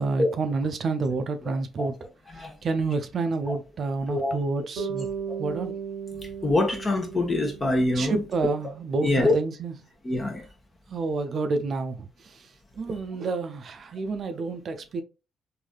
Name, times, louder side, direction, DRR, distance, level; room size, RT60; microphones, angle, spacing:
voice 1, 0.0-1.9 2.3-5.1 5.4-5.7 7.9-9.8 10.9-12.5 12.8-15.0, right 3 dB, 55° right, 0.5 m, -29 dB
Bass guitar, 4.8-9.0, right 7 dB, 85° right, 0.7 m, -37 dB
voice 2, 6.4-8.2 9.0-9.4 10.0-10.4, left 2 dB, 30° left, 1.0 m, -24 dB
3.2 x 2.6 x 2.3 m
cardioid pair, 90°, 0 cm